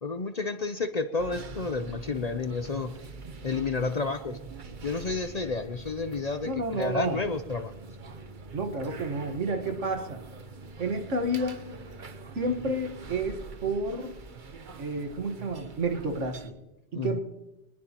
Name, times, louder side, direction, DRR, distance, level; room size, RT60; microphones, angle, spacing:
voice 1, 0.0-2.9 3.4-4.4 4.8-7.7 16.9-17.2, left 4 dB, 40° left, 9 dB, 0.6 m, -31 dB
sound 1, 1.2-16.5, right 3 dB, 45° right, 1.0 m, -44 dB
voice 2, 6.4-7.2 8.5-10.2 10.8-11.6 12.4-14.1 14.8-16.6 16.9-17.2, right 2 dB, 80° right, 6 dB, 1.8 m, -30 dB
23.0 x 20.5 x 2.9 m, 0.98 s
omnidirectional pair, 1.2 m